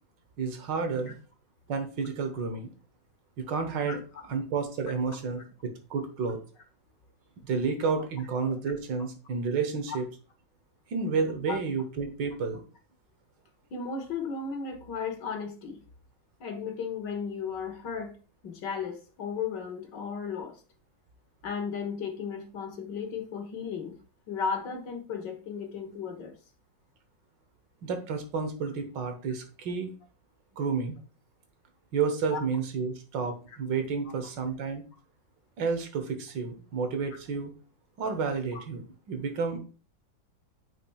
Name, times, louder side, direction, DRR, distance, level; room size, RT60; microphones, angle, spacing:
voice 1, 0.4-1.1 1.7-2.7 3.4-4.0 4.3-6.4 7.4-10.0 10.9-12.6 27.8-29.9 30.6-31.0 31.9-34.8 35.6-37.5 38.0-39.6, right 5 dB, 80° right, 7 dB, 1.8 m, -31 dB
voice 2, 13.7-15.8 16.4-18.2 18.4-20.6 21.4-24.0 24.3-26.4 32.3-32.4 33.5-33.6 38.5-38.6, left 6 dB, 75° left, 5 dB, 1.9 m, -35 dB
8.7 x 5.9 x 2.3 m, 0.35 s
omnidirectional pair, 2.0 m